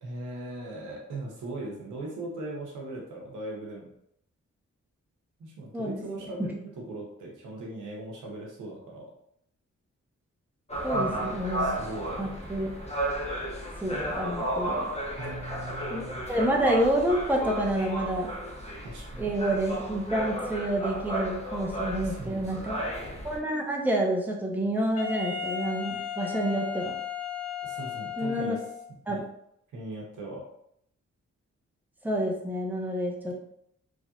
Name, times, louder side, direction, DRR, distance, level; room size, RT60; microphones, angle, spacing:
voice 1, 0.0-3.9 5.4-9.0 10.9-12.2 15.1-16.3 18.8-19.3 22.0-22.8 27.6-28.6 29.1-29.2 29.7-30.4, right 2 dB, 90° right, -2 dB, 0.8 m, -39 dB
sound 1, 10.7-23.4, right 1 dB, 20° left, 0.9 m, -33 dB
voice 2, 10.8-11.8 12.2-12.7 13.8-14.9 15.9-16.0 16.3-18.4 19.2-22.8 23.2-26.9 28.2-28.6 29.1-29.2 32.0-33.3, right 1 dB, 5° right, -1 dB, 0.7 m, -28 dB
Wind instrument woodwind instrument, 25.0-28.9, left 8 dB, 55° left, 0.7 m, -35 dB
3.1 x 2.6 x 2.3 m, 0.73 s
cardioid pair, 50°, 30 cm